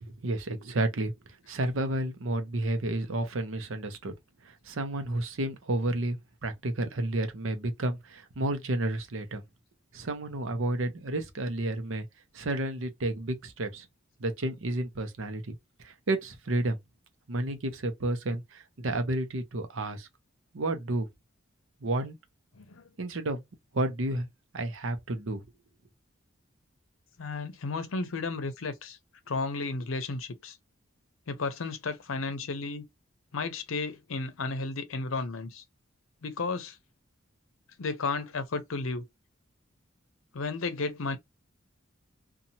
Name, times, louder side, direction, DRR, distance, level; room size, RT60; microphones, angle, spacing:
voice 1, 0.0-4.1 4.4-9.4 9.9-12.1 12.3-13.9 14.2-15.5 15.8-16.8 17.3-20.1 20.5-21.1 21.8-22.2 23.0-23.4 23.7-24.3 24.5-25.4, right 1 dB, 70° right, 0.7 m, -31 dB
voice 2, 27.2-29.0 29.3-30.6 31.3-32.8 33.3-35.6 36.2-36.8 37.8-39.0 40.3-41.2, left 3 dB, 80° left, 0.6 m, -33 dB
2.7 x 2.3 x 2.7 m
head